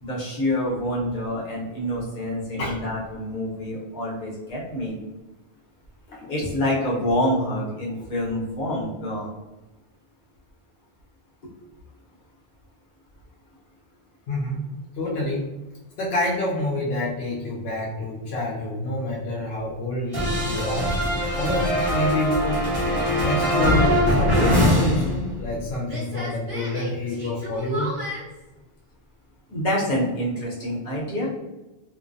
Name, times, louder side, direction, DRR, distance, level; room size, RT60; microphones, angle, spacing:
voice 1, 0.0-5.0 6.3-9.3 29.5-31.3, left 1 dB, 50° left, -5 dB, 1.0 m, -27 dB
voice 2, 14.3-14.6 15.0-15.5 16.0-20.9 21.3-22.6 23.2-27.9, left 1 dB, 80° left, -4 dB, 0.8 m, -27 dB
sound 1, 20.1-25.6 25.9-28.2, equal, 35° right, 1.0 m, -23 dB
2.5 x 2.0 x 2.6 m, 1.1 s
omnidirectional pair, 1.0 m